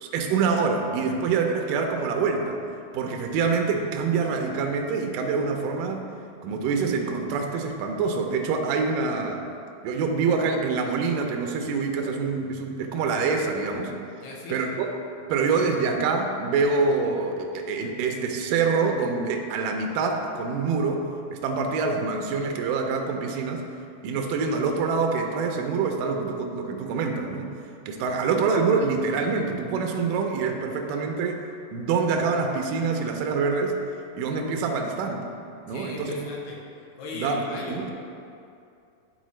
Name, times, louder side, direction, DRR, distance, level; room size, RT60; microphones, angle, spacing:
voice 1, 0.0-2.6 2.9-6.1 6.4-9.5 9.8-13.9 14.5-14.9 15.3-21.0 21.3-23.6 24.0-27.5 27.9-31.4 31.7-33.8 34.1-35.2 35.7-36.2 37.1-37.4 37.7-37.9, right 4 dB, 85° right, 3 dB, 1.9 m, -25 dB
voice 2, 14.2-14.7 35.7-36.6 37.0-37.9, left 3 dB, 80° left, -3 dB, 2.8 m, -37 dB
11.0 x 4.0 x 3.1 m, 2.5 s
omnidirectional pair, 4.5 m